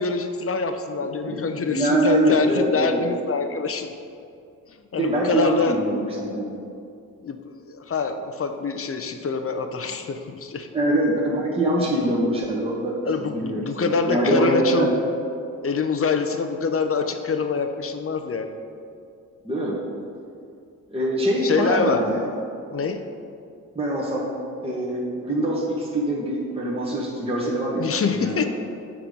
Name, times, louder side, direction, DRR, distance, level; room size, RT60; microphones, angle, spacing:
voice 1, 0.0-3.9 4.9-5.8 7.2-10.7 13.1-15.0 15.6-18.5 21.4-22.1 22.7-23.0 27.8-28.5, left 4 dB, 35° left, 7 dB, 0.7 m, -25 dB
voice 2, 1.2-3.0 5.0-6.6 10.7-14.9 19.4-19.8 20.9-22.3 23.7-24.2 24.6-28.5, right 1 dB, 15° right, -5 dB, 1.5 m, -24 dB
6.0 x 4.9 x 5.2 m, 2.4 s
hypercardioid pair, 40°, 41 cm